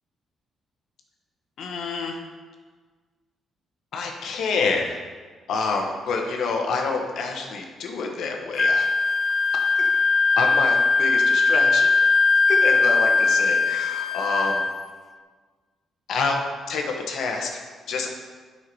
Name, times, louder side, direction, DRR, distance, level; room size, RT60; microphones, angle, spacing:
voice 1, 1.6-2.2 3.9-5.0 5.5-8.9 9.8-9.9 10.4-11.9 12.5-14.7 16.1-16.4 16.7-17.6 17.9-18.1, left 4 dB, 70° left, 2 dB, 1.2 m, -27 dB
Wind instrument woodwind instrument, 8.6-14.8, left 4 dB, 30° left, 0.5 m, -20 dB
9.0 x 5.8 x 4.7 m, 1.5 s
cardioid pair, 90°, 0 cm